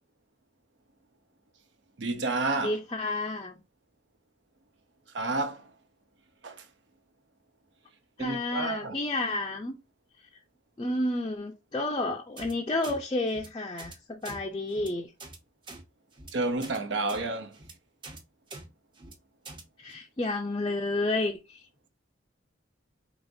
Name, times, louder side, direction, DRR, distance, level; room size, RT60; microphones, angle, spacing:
voice 1, 2.0-2.8 5.1-5.7 6.4-6.6 8.2-9.0 16.3-17.6, right 3 dB, 75° right, 0.7 m, -30 dB
voice 2, 2.6-3.6 8.2-9.8 10.8-15.1 19.8-21.6, left 2 dB, 25° left, 0.4 m, -31 dB
sound 1, 12.4-12.5 12.8-13.0 13.3-13.5 13.8-13.9 14.2-14.4 14.7-14.9 15.2-15.4 15.6-15.8 16.1-16.3 16.6-16.8 17.1-17.2 17.5-17.7 18.0-18.2 18.5-18.6 18.9-19.1 19.4-19.6, right 2 dB, 25° right, 0.7 m, -44 dB
4.9 x 3.0 x 2.5 m
head